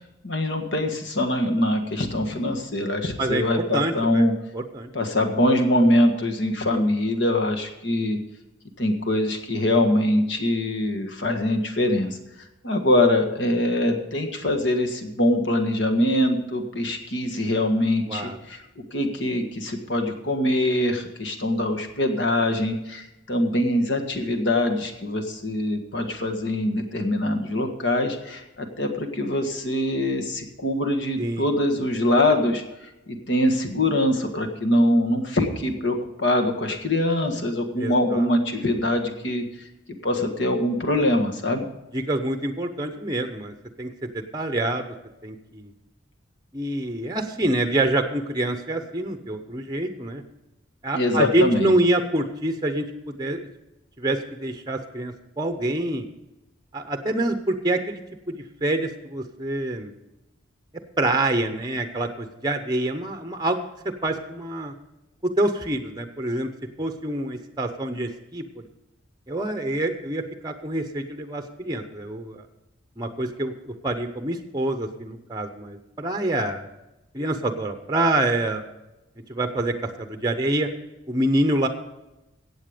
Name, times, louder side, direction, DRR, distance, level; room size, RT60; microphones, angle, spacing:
voice 1, 0.2-4.3 4.9-8.2 8.8-12.2 12.6-18.6 18.9-32.6 33.1-39.4 40.0-41.7 50.9-51.7, left 1 dB, 55° left, 5 dB, 1.6 m, -23 dB
voice 2, 3.7-4.2 4.5-4.9 6.7-6.9 18.1-18.4 31.2-31.5 37.8-38.3 41.9-44.8 45.2-45.7 46.5-50.2 50.8-53.5 54.0-56.0 56.7-58.0 58.3-59.9 61.0-63.7 64.0-64.7 65.2-66.5 66.8-68.4 69.3-72.4 73.0-76.7 77.1-78.6 79.3-80.7 81.1-81.7, right 1 dB, 20° right, 6 dB, 0.8 m, -26 dB
15.0 x 8.5 x 5.1 m, 0.95 s
head